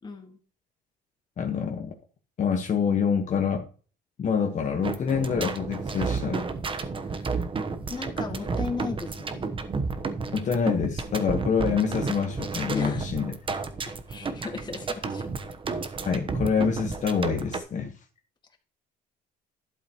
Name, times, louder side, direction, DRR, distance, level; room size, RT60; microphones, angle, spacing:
voice 1, 0.0-0.4 7.0-7.5 7.9-9.5 12.7-13.1 13.8-15.3, left 4 dB, 25° left, 4 dB, 1.9 m, -37 dB
voice 2, 1.4-1.9 2.4-3.7 4.2-6.5 10.3-13.3 16.0-18.0, left 6 dB, 45° left, 3 dB, 1.4 m, -26 dB
sound 1, 4.8-17.6, right 4 dB, 30° right, 1.1 m, -32 dB
12.0 x 7.5 x 3.1 m, 0.38 s
cardioid pair, 110°, 17 cm